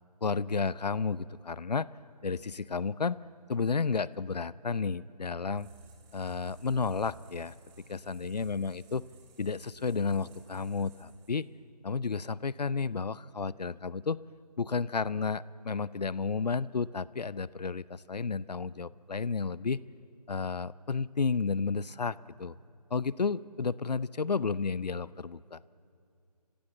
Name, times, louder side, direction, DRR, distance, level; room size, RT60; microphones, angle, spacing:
voice 1, 0.2-1.9 2.2-3.2 3.5-5.7 6.1-7.5 7.9-9.0 9.4-11.5 11.8-14.2 14.6-19.8 20.3-22.5 22.9-25.6, left 5 dB, 75° left, 20 dB, 0.6 m, -32 dB
sound 1, 5.5-11.6, right 4 dB, 10° right, 1.5 m, -56 dB
28.5 x 15.5 x 7.9 m, 2.4 s
figure-of-eight pair, 160°, 21 cm